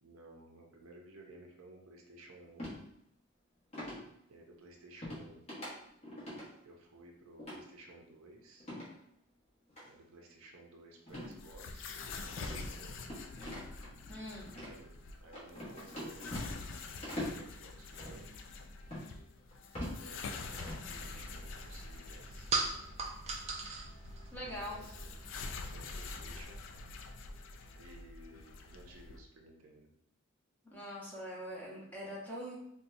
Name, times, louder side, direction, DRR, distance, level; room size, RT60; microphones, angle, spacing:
voice 1, 0.0-2.7 4.3-5.4 6.6-8.7 9.8-13.1 14.6-18.3 19.8-22.5 24.5-25.1 25.5-26.6 27.8-29.9, right 2 dB, 80° right, 1 dB, 0.6 m, -56 dB
sound 1, 2.6-2.8 3.7-4.0 5.0-5.2 5.5-5.7 6.0-6.4 7.4-7.6 8.6-8.9 9.7-9.8 11.1-11.3 11.6-11.7 12.3-13.9 14.5-14.7 15.3-16.7 17.0-17.4 17.9-18.2 18.9-19.1 19.5-20.0 20.4-20.8, left 1 dB, 30° left, 1.1 m, -42 dB
sound 2, 11.1-29.2, left 4 dB, 60° left, 0.3 m, -47 dB
voice 2, 14.1-14.5 24.3-24.8 30.6-32.6, equal, 10° left, -6 dB, 0.9 m, -43 dB
sound 3, 20.9-26.4, right 3 dB, 30° right, 0.3 m, -41 dB
4.1 x 2.2 x 2.6 m, 0.77 s
head